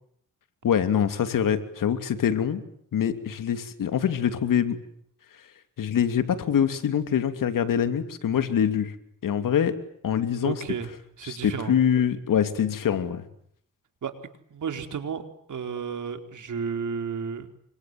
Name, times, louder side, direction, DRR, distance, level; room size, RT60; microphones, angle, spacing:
voice 1, 0.6-2.6 2.9-4.8 5.8-8.9 9.2-9.7 10.0-10.6 11.2-13.2, left 8 dB, 80° left, 10 dB, 2.9 m, -24 dB
voice 2, 10.4-10.9 11.2-11.8 14.0-14.1 14.5-15.2 15.5-17.5, right 6 dB, 70° right, 7 dB, 4.4 m, -32 dB
29.5 x 25.0 x 7.8 m, 0.68 s
cardioid pair, 75°, 32 cm